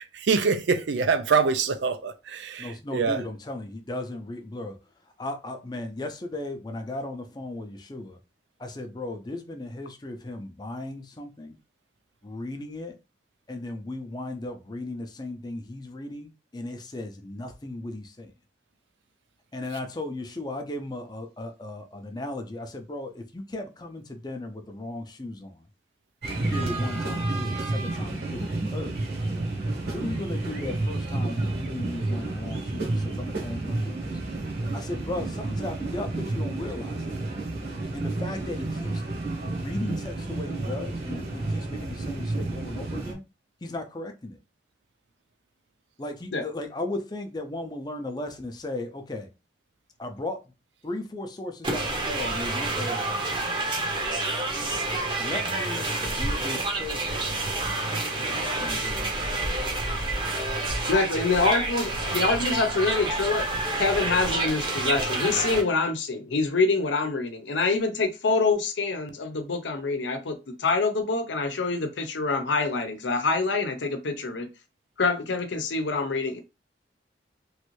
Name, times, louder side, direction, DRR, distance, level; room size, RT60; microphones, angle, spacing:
voice 1, 0.1-3.2, right 5 dB, 80° right, 0.5 m, -25 dB
voice 2, 2.6-4.7 5.2-8.2 8.6-11.5 12.2-12.9 13.5-18.0 19.5-25.5 26.3-29.0 29.9-34.0 34.7-37.0 37.9-39.0 39.6-43.2 43.6-44.3 46.0-49.3 50.0-50.4 50.8-53.3 55.2-55.8 56.1-57.2 57.7-57.8 58.6-59.1, left 2 dB, 20° left, 0.5 m, -36 dB
sound 1, 26.2-43.1, right 2 dB, 60° right, 1.0 m, -30 dB
sound 2, 51.6-65.6, right 2 dB, 25° right, 0.7 m, -28 dB
voice 3, 60.9-63.5 63.8-74.5 75.0-76.4, left 3 dB, 80° left, 0.7 m, -26 dB
3.1 x 2.5 x 3.1 m
head